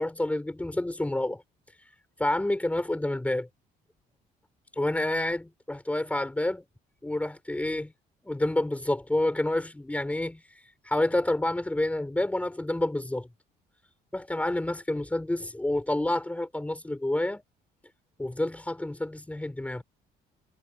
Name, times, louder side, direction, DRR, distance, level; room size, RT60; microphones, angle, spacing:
voice 1, 0.0-1.4 2.2-3.5 4.8-6.6 7.0-7.9 8.2-10.4 10.8-13.3 14.1-17.4 18.2-19.8, left 1 dB, 10° left, 4.2 m, -28 dB
cardioid pair, 110°, 17 cm